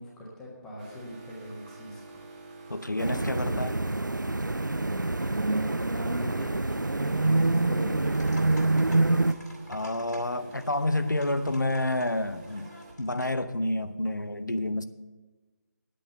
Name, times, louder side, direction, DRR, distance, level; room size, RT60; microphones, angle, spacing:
voice 1, 0.0-2.3 5.5-8.8, equal, 5° left, 1.4 m, -43 dB
sound 1, 0.8-12.9, right 3 dB, 25° right, 1.6 m, -49 dB
voice 2, 2.7-3.8 9.7-12.7 13.0-14.8, left 1 dB, 85° left, 0.7 m, -29 dB
sound 2, 3.0-9.3, right 2 dB, 90° right, 0.5 m, -26 dB
sound 3, 8.1-13.4, equal, 65° left, 2.4 m, -51 dB
10.0 x 8.5 x 6.8 m
figure-of-eight pair, 155°, 10 cm